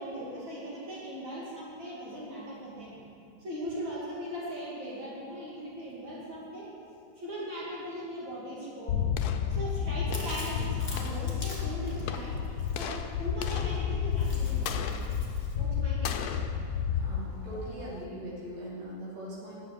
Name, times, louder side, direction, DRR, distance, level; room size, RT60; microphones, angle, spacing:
voice 1, 0.0-3.0 3.4-6.7 7.2-9.1 9.5-12.4 12.7-14.7 15.5-16.1, equal, 90° right, -7 dB, 3.0 m, -39 dB
sound 1, 8.9-18.0, left 7 dB, 70° left, 1.0 m, -31 dB
Chewing mastication, 10.1-15.6, left 2 dB, 30° left, 1.9 m, -46 dB
voice 2, 16.9-19.6, right 1 dB, 65° right, -7 dB, 2.9 m, -41 dB
9.7 x 6.1 x 7.6 m, 2.5 s
omnidirectional pair, 2.0 m